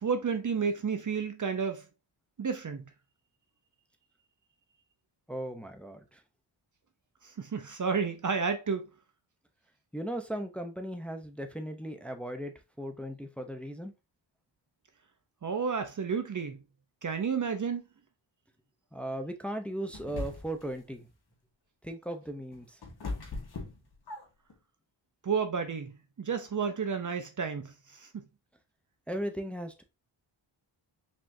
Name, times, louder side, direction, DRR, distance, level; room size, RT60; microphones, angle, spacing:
voice 1, 0.0-1.8 2.4-2.8 7.4-8.8 15.4-16.6 17.0-17.9 25.2-25.9 26.2-28.2, right 5 dB, 40° right, 0.7 m, -31 dB
voice 2, 5.3-6.2 9.9-13.9 18.9-21.1 21.8-22.8 29.1-29.8, right 1 dB, 5° left, 0.7 m, -37 dB
sound 1, 19.9-20.7 22.2-24.5, left 3 dB, 50° left, 1.7 m, -39 dB
5.1 x 3.6 x 2.7 m
cardioid pair, 85°, 48 cm